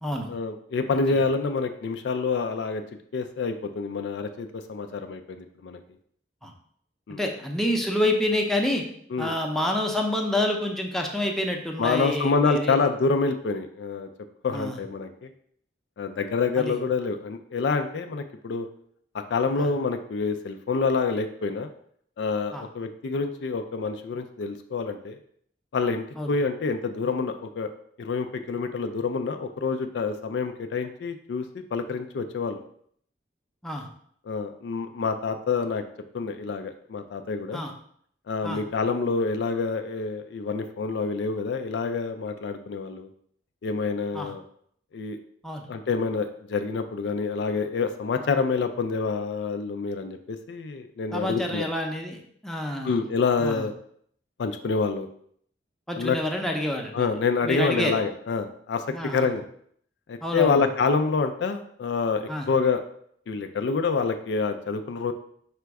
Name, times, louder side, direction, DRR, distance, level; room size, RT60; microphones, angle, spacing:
voice 1, 0.3-2.8 3.1-5.8 7.1-7.2 9.1-9.3 11.8-14.1 14.4-15.3 16.0-18.7 19.3-21.7 22.2-25.2 25.7-27.7 28.0-31.4 31.7-32.6 34.3-35.8 36.1-37.6 38.3-43.1 43.6-44.4 44.9-45.2 45.7-51.7 52.8-53.7 54.4-55.1 56.0-56.2 56.9-58.8 59.1-59.4 60.1-62.8 63.3-65.1, left 4 dB, 75° left, 7 dB, 0.4 m, -27 dB
voice 2, 7.2-8.8 9.2-12.8 14.5-14.8 16.6-16.8 19.6-19.7 22.5-22.6 26.2-26.3 33.6-33.9 37.5-37.7 38.4-38.6 44.1-44.3 45.4-45.7 51.1-53.0 53.4-53.7 55.9-57.1 57.4-58.0 58.9-59.4 60.2-60.7 62.3-62.5, left 1 dB, ahead, 1 dB, 0.6 m, -28 dB
5.0 x 2.3 x 4.6 m, 0.64 s
head